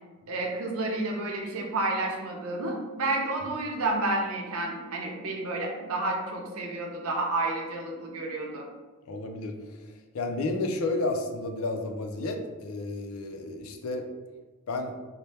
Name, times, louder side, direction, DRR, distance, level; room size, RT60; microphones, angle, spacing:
voice 1, 0.3-8.7, right 2 dB, 80° right, 0 dB, 0.7 m, -30 dB
voice 2, 9.1-14.1 14.7-15.0, left 2 dB, 75° left, 5 dB, 0.4 m, -32 dB
4.1 x 2.1 x 3.3 m, 1.3 s
head